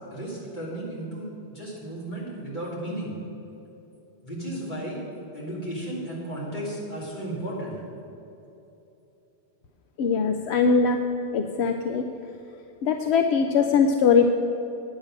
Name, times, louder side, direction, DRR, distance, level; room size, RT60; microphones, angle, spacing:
voice 1, 0.1-3.1 4.2-5.0 5.3-7.7, right 1 dB, 45° left, -6 dB, 3.3 m, -34 dB
voice 2, 10.0-11.0 11.3-12.0 12.8-14.3, left 5 dB, 85° left, 5 dB, 0.9 m, -21 dB
10.0 x 8.9 x 6.5 m, 3.0 s
omnidirectional pair, 1.1 m